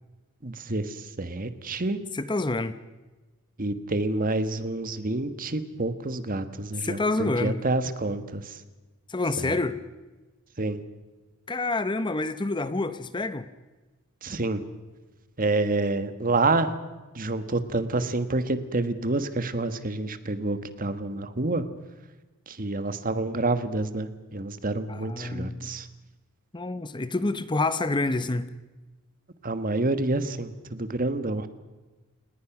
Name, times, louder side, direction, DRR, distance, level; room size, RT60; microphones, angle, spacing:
voice 1, 0.4-2.0 3.6-8.6 9.4-9.5 10.6-10.8 14.2-14.6 15.4-16.8 17.1-21.7 22.5-25.9 29.4-31.5, right 2 dB, 40° right, 11 dB, 1.4 m, -28 dB
voice 2, 2.1-2.7 6.8-7.6 9.1-9.8 11.5-13.5 24.9-25.8 26.5-28.5, left 2 dB, 20° left, 12 dB, 0.8 m, -28 dB
29.0 x 19.5 x 6.0 m, 1.2 s
head